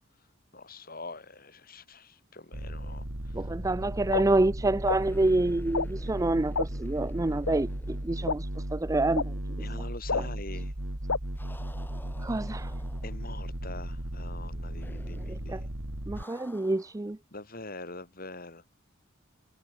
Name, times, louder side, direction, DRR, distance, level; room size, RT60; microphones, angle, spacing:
voice 1, 0.5-3.3 9.6-10.7 13.0-15.7 17.3-18.6, left 2 dB, 45° left, 5.7 m, -44 dB
sound 1, 2.5-16.2, right 1 dB, 85° right, 3.0 m, -36 dB
voice 2, 3.3-9.6 10.1-10.3 12.2-12.7 15.3-15.6 16.1-17.2, right 2 dB, 15° right, 0.4 m, -28 dB
sound 2, 4.1-4.2 4.9-5.0 5.7-5.9 6.5-6.7 7.4-7.5 8.3-8.4 9.1-9.2 10.1-10.2 11.1-11.2, left 4 dB, 90° left, 1.3 m, -27 dB
sound 3, 4.8-9.0 9.2-9.3 11.3-13.4 14.8-15.5 16.1-17.0, left 1 dB, 10° left, 3.3 m, -52 dB
head